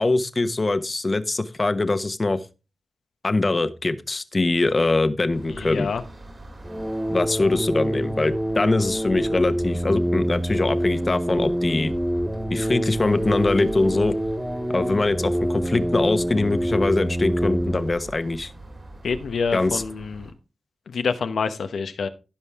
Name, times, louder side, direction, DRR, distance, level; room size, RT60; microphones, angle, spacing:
voice 1, 0.0-2.4 3.2-5.9 7.1-11.9 12.5-14.1 14.7-18.5 19.5-19.8, left 2 dB, 45° left, 12 dB, 1.1 m, -23 dB
sound 1, 5.3-20.3, right 1 dB, 50° right, 3.7 m, -41 dB
voice 2, 5.5-6.0 19.0-20.3 20.9-22.1, left 5 dB, 90° left, 9 dB, 0.9 m, -27 dB
sound 2, 6.6-17.9, equal, 10° right, 1.6 m, -26 dB
16.0 x 5.4 x 3.5 m, 0.30 s
cardioid pair, 40°, 0 cm